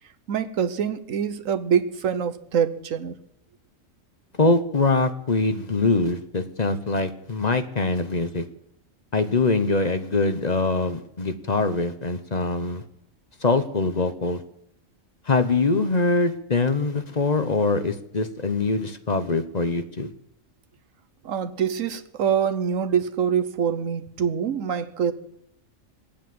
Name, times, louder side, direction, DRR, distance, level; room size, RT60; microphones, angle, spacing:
voice 1, 0.3-3.1 21.2-25.1, right 8 dB, 85° right, 9 dB, 1.4 m, -25 dB
voice 2, 4.4-8.4 9.1-12.8 13.4-14.4 15.3-20.1, left 3 dB, 35° left, 9 dB, 1.0 m, -23 dB
20.5 x 8.6 x 7.7 m, 0.78 s
omnidirectional pair, 1.3 m